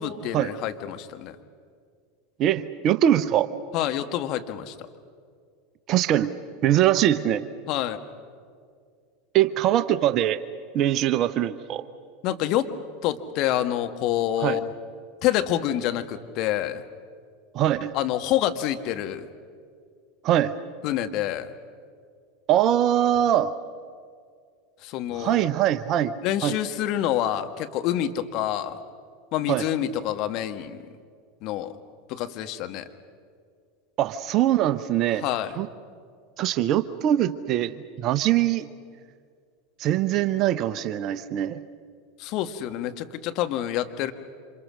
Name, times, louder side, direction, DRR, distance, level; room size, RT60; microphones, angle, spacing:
voice 1, 0.0-1.4 3.7-4.9 7.7-8.0 12.2-12.7 13.0-14.7 15.2-16.8 17.9-19.3 20.8-21.5 24.8-25.4 26.2-28.8 29.3-30.8 31.4-31.7 32.1-32.9 35.2-35.5 42.2-44.1, left 12 dB, 50° left, 8 dB, 1.6 m, -27 dB
voice 2, 2.4-3.5 5.9-6.3 6.6-7.5 9.3-10.4 10.7-11.8 14.4-14.6 17.5-17.9 20.2-20.5 22.5-23.5 25.2-26.1 26.4-26.6 29.5-29.7 34.0-35.3 35.6-35.7 36.4-38.7 39.8-41.6, right 12 dB, 45° right, 12 dB, 0.9 m, -22 dB
28.0 x 26.5 x 6.4 m, 2.1 s
figure-of-eight pair, 85°, 0 cm